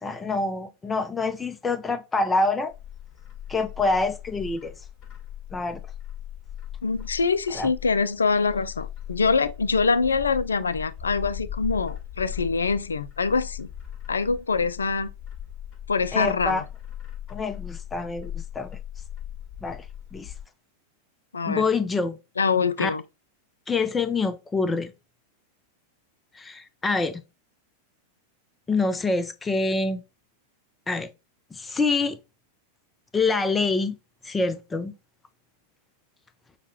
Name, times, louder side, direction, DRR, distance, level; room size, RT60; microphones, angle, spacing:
voice 1, 0.0-2.7 3.5-4.7 5.5-5.8 7.5-7.7 16.1-16.6 17.3-18.8 19.6-19.9 20.1-20.3 21.5-22.2 22.8-22.9 23.7-24.9 26.3-27.2 28.7-30.0 30.9-31.1 31.5-32.2 33.1-34.0 34.2-34.9, left 3 dB, 15° left, 0.5 m, -26 dB
Bird, 2.7-20.4, left 10 dB, 35° left, 1.3 m, -39 dB
voice 2, 6.8-13.7 14.1-15.1 15.9-16.6 21.3-21.6 22.4-23.0, left 4 dB, 75° left, 0.3 m, -24 dB
5.8 x 2.2 x 2.9 m
figure-of-eight pair, 90°, 0 cm